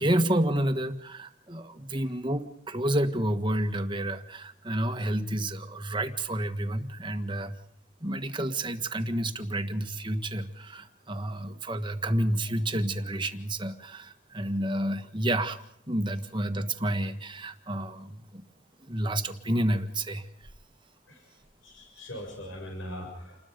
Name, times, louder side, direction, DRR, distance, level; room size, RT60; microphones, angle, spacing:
voice 1, 0.0-7.6 8.0-15.6 15.9-18.4 18.8-20.5, right 1 dB, 25° right, 7 dB, 1.6 m, -30 dB
voice 2, 21.6-23.4, left 1 dB, 80° left, 2 dB, 6.8 m, -41 dB
29.0 x 21.0 x 5.2 m, 0.69 s
head